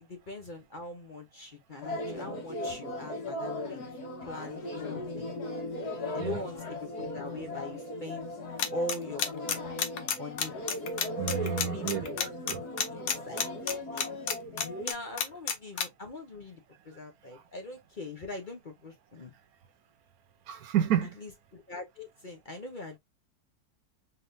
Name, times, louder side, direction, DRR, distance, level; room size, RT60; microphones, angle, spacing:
voice 1, 0.0-3.8 4.2-5.4 6.1-8.3 8.7-9.7 10.2-10.5 11.4-12.3 12.9-14.0 14.8-19.3 21.2-23.0, left 2 dB, 40° left, 0.8 m, -41 dB
sound 1, 1.8-14.9, left 1 dB, 85° left, 1.9 m, -38 dB
sound 2, 8.6-15.8, left 7 dB, 70° left, 1.2 m, -29 dB
voice 2, 11.2-12.6 20.5-21.1, right 10 dB, 75° right, 1.1 m, -30 dB
3.9 x 3.5 x 2.6 m
omnidirectional pair, 1.6 m